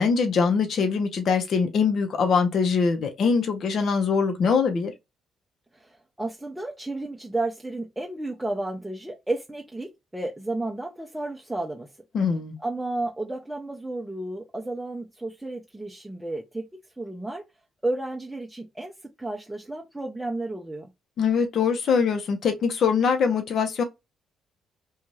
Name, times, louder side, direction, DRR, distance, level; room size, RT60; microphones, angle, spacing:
voice 1, 0.0-4.9 12.1-12.6 21.2-23.8, left 5 dB, 60° left, 0.7 m, -23 dB
voice 2, 5.7-11.9 12.6-16.7 17.0-17.4 17.8-18.9 19.2-20.9, right 2 dB, 10° right, 0.6 m, -32 dB
2.6 x 2.3 x 3.1 m
cardioid pair, 80°, 0 cm